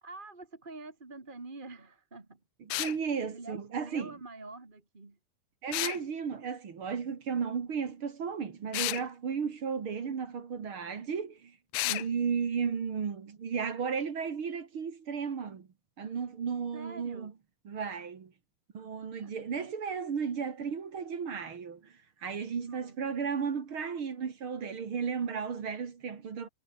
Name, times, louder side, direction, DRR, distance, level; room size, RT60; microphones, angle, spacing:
voice 1, 0.0-2.4 3.3-5.2 11.8-12.1 16.7-17.3 19.2-19.4 22.5-23.0, right 3 dB, 20° right, 1.8 m, -46 dB
sound 1, 2.7-3.0 5.7-6.0 8.7-9.0 11.7-12.1, left 19 dB, 90° left, 2.3 m, -31 dB
voice 2, 2.8-4.1 5.6-11.6 11.9-15.7 16.0-17.3 17.7-18.3 18.7-21.9 22.2-26.5, right 6 dB, 45° right, 2.6 m, -34 dB
omnidirectional pair, 3.7 m